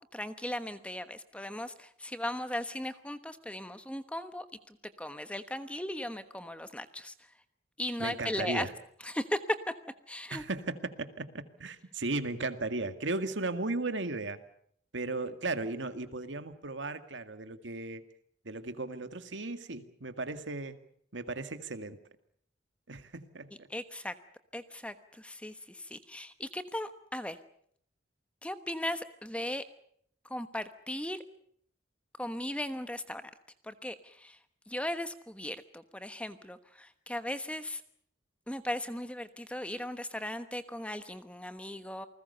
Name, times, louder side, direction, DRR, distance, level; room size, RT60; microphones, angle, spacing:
voice 1, 0.1-7.1 7.8-8.7 9.0-9.4 10.1-10.4 23.7-24.1 24.5-27.4 28.4-29.6 30.3-31.2 32.2-33.3 33.6-34.4 34.7-37.8 38.5-42.1, left 1 dB, 5° left, 10 dB, 1.2 m, -37 dB
voice 2, 8.0-8.7 10.3-14.4 14.9-18.0 18.4-20.8 21.1-22.0 22.9-23.7, right 2 dB, 85° right, 9 dB, 2.0 m, -36 dB
28.5 x 20.5 x 6.9 m, 0.64 s
head